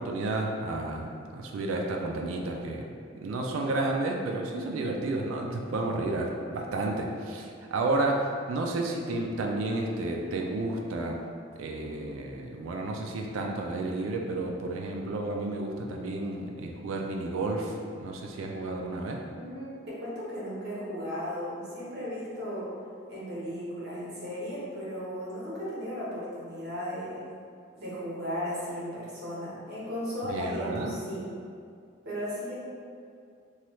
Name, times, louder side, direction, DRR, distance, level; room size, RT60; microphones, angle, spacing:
voice 1, 0.0-2.8 3.2-11.2 11.6-19.2 30.3-31.0, right 2 dB, 85° right, 1 dB, 0.3 m, -31 dB
voice 2, 4.6-4.9 19.4-22.7 23.1-27.2 27.8-31.4 32.0-32.5, equal, 55° right, -8 dB, 0.9 m, -35 dB
3.0 x 2.3 x 3.0 m, 2.3 s
head